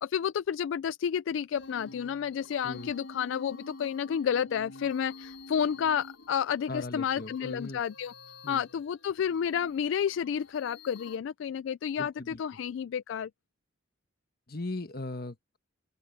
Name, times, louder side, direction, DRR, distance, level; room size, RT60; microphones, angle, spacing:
voice 1, 0.0-8.1 8.5-13.3, left 8 dB, 70° left, 0.3 m, -31 dB
sound 1, 1.5-11.2, left 3 dB, 85° left, 5.5 m, -49 dB
voice 2, 6.7-7.8 8.4-8.6 12.0-12.4 14.5-15.6, left 2 dB, 50° left, 1.4 m, -38 dB
open air
head